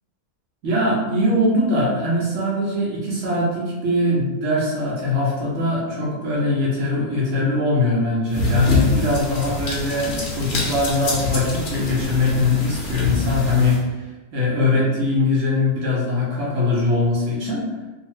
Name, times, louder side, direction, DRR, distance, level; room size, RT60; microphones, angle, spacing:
voice 1, 0.6-13.9 14.3-17.6, left 2 dB, 60° right, -4 dB, 1.1 m, -21 dB
sound 1, 8.3-13.8, left 2 dB, 55° left, 0.5 m, -25 dB
2.7 x 2.5 x 3.0 m, 1.2 s
omnidirectional pair, 1.6 m